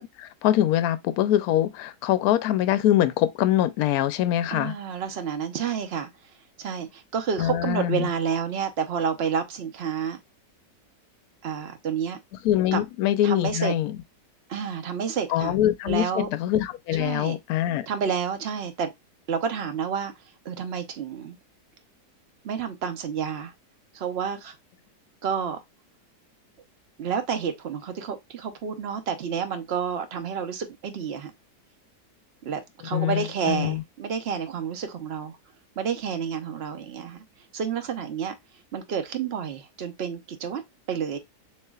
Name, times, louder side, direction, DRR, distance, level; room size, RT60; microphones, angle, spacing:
voice 1, 0.0-4.7 7.4-8.1 12.4-13.9 15.3-17.9 32.9-33.8, left 12 dB, 70° left, 1.0 m, -24 dB
voice 2, 4.5-6.1 6.6-10.2 11.4-12.2 12.7-12.8 13.2-13.7 14.5-15.6 15.9-16.3 16.9-17.4 17.9-18.9 19.3-20.1 20.4-21.4 22.4-23.5 23.9-24.6 25.2-25.6 27.0-31.3 32.4-35.4 35.8-37.2 37.5-38.4 38.7-40.6 40.9-41.2, right 7 dB, 50° right, 0.8 m, -29 dB
6.5 x 3.0 x 2.3 m
omnidirectional pair, 1.8 m